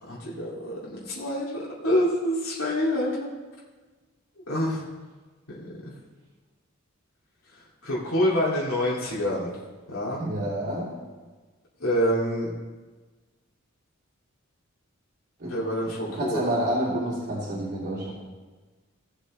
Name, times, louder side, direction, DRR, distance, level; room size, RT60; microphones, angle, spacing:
voice 1, 0.0-3.3 4.5-4.8 5.5-5.9 7.8-9.6 9.9-10.2 11.8-12.5 15.4-16.4, equal, 80° left, -6 dB, 2.5 m, -27 dB
voice 2, 10.2-10.9 15.4-15.7 16.1-18.1, right 1 dB, 55° right, -10 dB, 2.9 m, -28 dB
17.0 x 7.9 x 3.2 m, 1.3 s
head